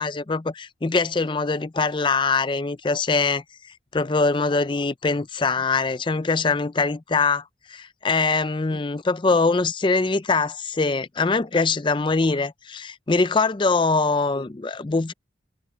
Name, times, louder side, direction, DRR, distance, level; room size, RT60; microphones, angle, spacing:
voice 1, 0.0-3.4 3.9-7.4 7.7-15.1, left 4 dB, 25° left, 0.5 m, -23 dB
head